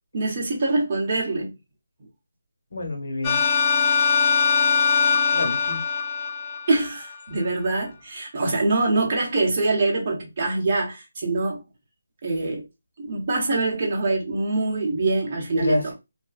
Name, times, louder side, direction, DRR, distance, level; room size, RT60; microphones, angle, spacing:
voice 1, 0.1-1.5 6.7-11.6 12.2-12.6 13.0-15.9, right 2 dB, 35° right, 1.0 m, -24 dB
voice 2, 2.7-3.4 5.3-5.8 15.5-15.9, left 2 dB, 75° left, 1.1 m, -27 dB
sound 1, 3.2-7.1, left 6 dB, 15° left, 0.4 m, -22 dB
2.5 x 2.2 x 2.3 m
figure-of-eight pair, 165°, 0 cm